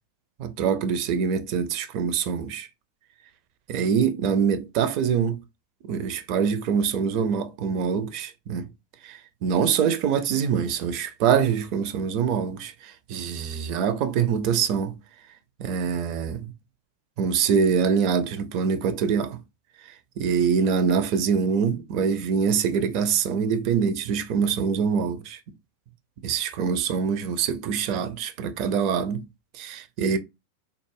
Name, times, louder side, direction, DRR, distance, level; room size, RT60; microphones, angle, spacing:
voice 1, 0.4-2.7 3.7-5.4 5.8-8.7 9.0-14.9 15.6-16.5 17.2-19.4 20.2-25.4 26.2-29.2 29.5-30.2, right 7 dB, 45° right, 0.5 m, -24 dB
3.4 x 2.0 x 3.3 m
figure-of-eight pair, 90°, 0 cm